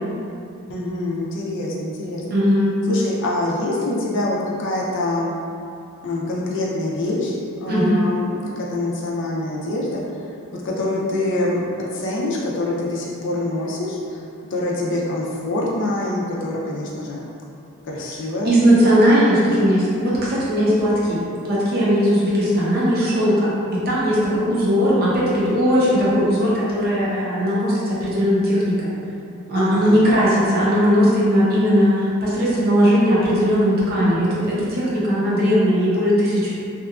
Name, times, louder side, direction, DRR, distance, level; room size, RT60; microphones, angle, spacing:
voice 1, 0.7-2.2 2.9-5.3 6.0-8.3 8.6-10.3 10.6-17.2 17.8-18.6 29.5-30.1, left 1 dB, 55° left, -4 dB, 0.4 m, -25 dB
voice 2, 2.3-2.7 7.7-8.0 18.5-28.9 29.5-36.5, equal, 45° right, -8 dB, 0.6 m, -18 dB
2.8 x 2.3 x 2.4 m, 2.5 s
head